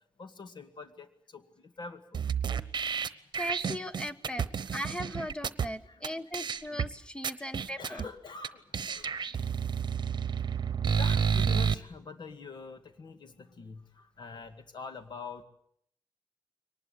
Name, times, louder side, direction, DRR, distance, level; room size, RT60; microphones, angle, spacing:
voice 1, 0.2-2.3 4.4-4.6 5.9-6.4 7.4-9.2 10.1-15.4, left 4 dB, 65° left, 8 dB, 2.0 m, -46 dB
sound 1, 2.1-5.7 6.0-6.1 6.3-6.9 7.2-8.1 8.4-8.5 8.7-11.7, right 7 dB, 65° right, 0.9 m, -30 dB
voice 2, 3.4-4.4 4.7-8.0, equal, 10° left, 11 dB, 1.2 m, -38 dB
23.0 x 19.5 x 8.4 m, 0.67 s
wide cardioid pair, 125°, 8 cm